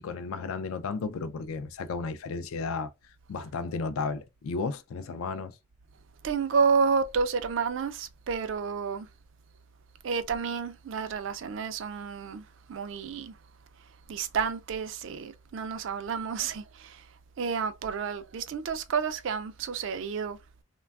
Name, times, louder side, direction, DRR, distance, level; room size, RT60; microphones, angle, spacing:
voice 1, 0.0-2.9 3.3-5.6, left 4 dB, 75° left, 0.4 m, -33 dB
voice 2, 6.2-9.1 10.0-13.4 14.1-20.4, right 5 dB, 60° right, 0.3 m, -30 dB
3.2 x 2.2 x 2.3 m
head